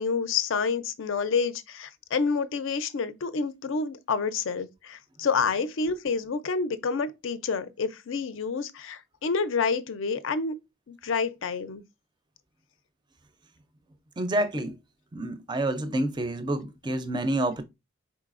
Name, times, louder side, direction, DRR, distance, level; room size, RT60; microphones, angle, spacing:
voice 1, 0.0-10.6 10.9-11.8, left 5 dB, 65° left, 0.5 m, -28 dB
voice 2, 14.2-14.8 15.1-17.6, right 1 dB, 20° right, 0.4 m, -28 dB
4.6 x 3.9 x 2.4 m
head